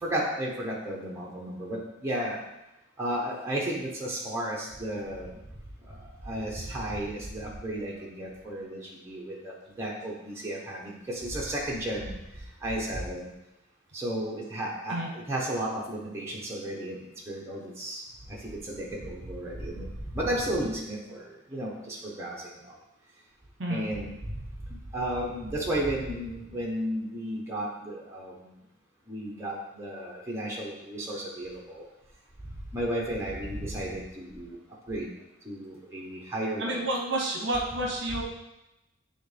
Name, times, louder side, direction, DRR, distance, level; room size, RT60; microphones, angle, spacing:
voice 1, 0.0-2.4 3.0-5.3 6.2-9.5 9.8-12.1 12.6-13.3 13.9-17.0 17.3-18.0 18.6-19.8 20.1-21.2 21.5-22.4 22.7-22.8 23.7-24.4 24.9-28.3 29.1-31.8 32.7-34.6 34.9-35.1 35.4-36.8, right 1 dB, 15° right, -4 dB, 1.2 m, -33 dB
voice 2, 36.6-38.2, right 1 dB, 55° right, -1 dB, 1.0 m, -29 dB
9.1 x 3.7 x 3.5 m, 0.94 s
head